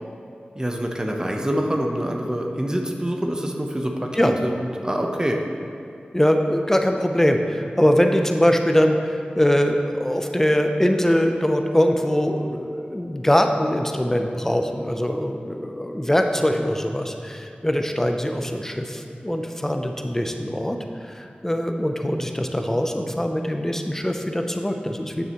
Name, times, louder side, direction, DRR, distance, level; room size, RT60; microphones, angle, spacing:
voice 1, 0.6-5.4, equal, 20° right, 1 dB, 0.7 m, -26 dB
voice 2, 6.1-25.2, equal, 15° left, 4 dB, 0.6 m, -22 dB
9.1 x 6.5 x 3.0 m, 2.6 s
wide cardioid pair, 60°, 3 cm